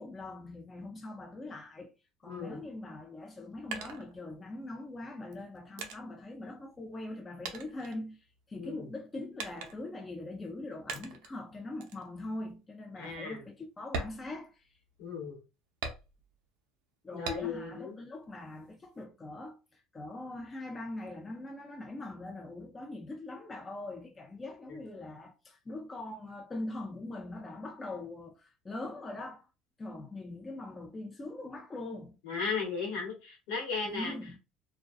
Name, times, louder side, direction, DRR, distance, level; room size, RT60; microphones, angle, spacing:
voice 1, 0.0-1.9 2.2-8.2 8.5-14.7 17.0-29.5 29.8-32.2 33.8-34.4, left 2 dB, 25° left, 0.5 m, -42 dB
voice 2, 2.2-2.6 8.5-8.8 13.0-13.4 15.0-15.4 17.1-17.9 32.2-34.1, left 5 dB, 80° left, 1.2 m, -36 dB
sound 1, 3.2-4.7 5.3-7.2 7.4-8.6 9.4-10.0 10.9-11.4 11.8-12.1 12.5-12.6 13.0-13.2 13.8-15.0 15.8-16.5 17.2-17.8 18.2-19.0, right 4 dB, 75° right, 0.5 m, -42 dB
2.3 x 2.2 x 2.4 m
supercardioid pair, 80°, 0 cm